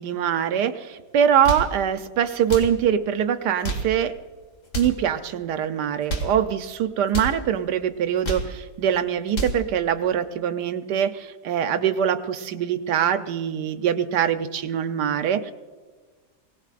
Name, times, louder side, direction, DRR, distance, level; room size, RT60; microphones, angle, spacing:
voice 1, 0.0-4.1 4.7-15.5, right 9 dB, 75° right, 9 dB, 1.4 m, -23 dB
sound 1, 1.2-1.8 2.4-2.8 3.5-4.0 4.6-5.0 5.9-6.4 7.1-7.4 8.0-8.6 9.1-9.6, right 2 dB, 45° left, 2.3 m, -29 dB
22.0 x 18.0 x 2.5 m, 1.4 s
omnidirectional pair, 1.8 m